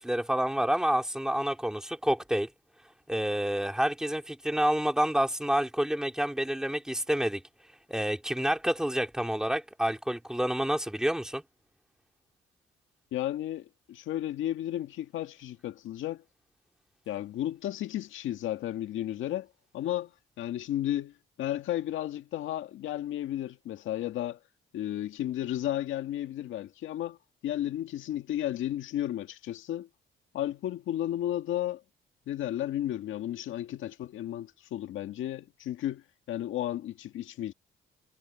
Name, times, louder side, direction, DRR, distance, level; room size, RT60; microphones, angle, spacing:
voice 1, 0.0-2.5 3.1-7.4 7.9-11.4, right 1 dB, 5° right, 2.4 m, -28 dB
voice 2, 13.1-16.2 17.1-19.5 19.7-20.1 20.4-24.4 24.7-27.2 27.4-29.9 30.3-31.8 32.3-37.5, left 12 dB, 80° left, 1.8 m, -33 dB
cardioid pair, 90°, 20 cm